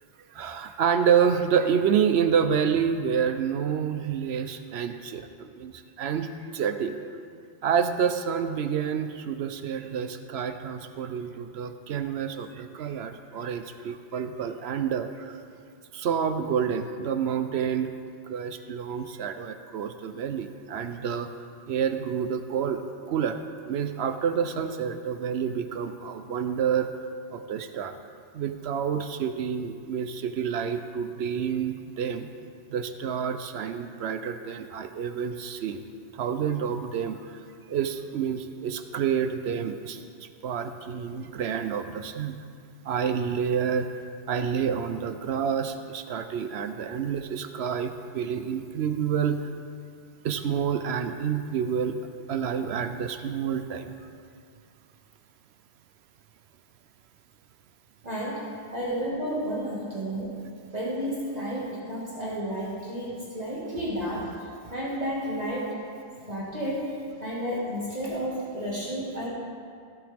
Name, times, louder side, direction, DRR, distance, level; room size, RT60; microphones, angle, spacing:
voice 1, 0.3-7.0 7.6-15.4 15.9-17.9 18.3-21.3 21.7-26.9 27.3-27.9 28.3-32.3 32.7-35.8 36.1-42.4 42.8-43.9 44.3-49.5 50.2-52.0 52.3-53.9, right 7 dB, 70° right, 9 dB, 0.8 m, -28 dB
voice 2, 58.0-60.4 60.7-65.8 66.3-66.9 67.2-69.3, equal, 35° right, -7 dB, 1.9 m, -32 dB
15.5 x 7.9 x 3.5 m, 2.3 s
omnidirectional pair, 1.2 m